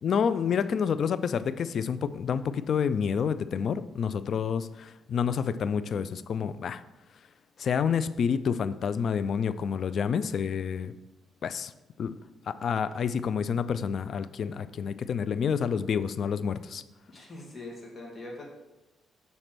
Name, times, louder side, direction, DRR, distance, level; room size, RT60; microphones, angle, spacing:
voice 1, 0.0-6.8 7.6-10.9 11.4-11.7 12.0-12.2 12.5-16.8, left 7 dB, 55° left, 14 dB, 0.4 m, -28 dB
voice 2, 17.1-18.4, left 2 dB, 25° left, -3 dB, 2.4 m, -42 dB
6.6 x 4.1 x 6.0 m, 1.0 s
cardioid pair, 90°, 0 cm